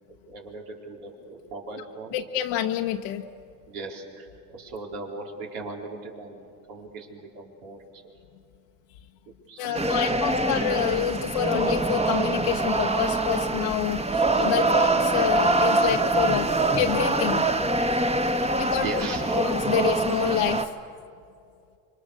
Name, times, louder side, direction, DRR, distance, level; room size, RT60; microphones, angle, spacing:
voice 1, 0.3-2.2 3.7-8.0 9.5-10.2 18.4-19.2 20.8-20.9, right 3 dB, 75° right, 0 dB, 4.3 m, -39 dB
voice 2, 2.1-3.2 9.6-17.4 18.5-20.7, left 11 dB, 75° left, 2 dB, 1.2 m, -28 dB
sound 1, 9.7-20.7, right 2 dB, 15° right, 1.4 m, -24 dB
26.5 x 24.0 x 6.7 m, 2.4 s
supercardioid pair, 80°, 42 cm